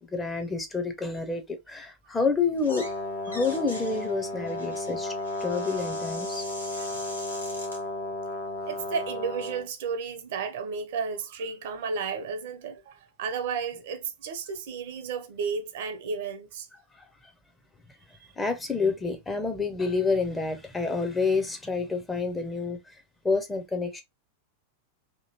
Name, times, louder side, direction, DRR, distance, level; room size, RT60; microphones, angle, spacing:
voice 1, 0.0-2.9 3.3-5.1 5.4-6.4 17.0-17.1 18.4-24.0, left 4 dB, 10° left, 0.6 m, -28 dB
sound 1, 2.5-3.0 3.2-7.8, left 1 dB, 85° left, 0.8 m, -43 dB
Brass instrument, 2.7-9.7, left 2 dB, 50° left, 0.6 m, -34 dB
voice 2, 8.6-16.7, right 6 dB, 55° right, 0.6 m, -33 dB
2.9 x 2.5 x 2.8 m
figure-of-eight pair, 90°, 0 cm